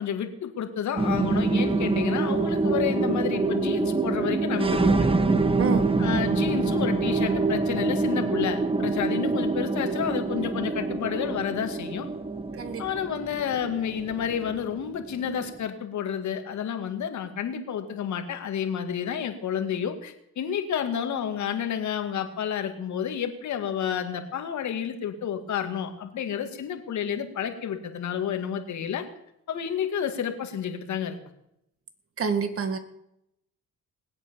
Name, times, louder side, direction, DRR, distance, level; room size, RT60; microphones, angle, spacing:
voice 1, 0.0-4.9 6.0-12.1 12.8-29.0 29.5-31.2, left 8 dB, 70° left, 6 dB, 2.2 m, -30 dB
sound 1, 1.0-15.6, right 3 dB, 20° right, 1.3 m, -26 dB
voice 2, 5.6-5.9 12.6-12.8 32.2-32.8, right 5 dB, 45° right, 9 dB, 2.0 m, -27 dB
20.5 x 8.3 x 7.0 m, 0.82 s
cardioid pair, 90°, 30 cm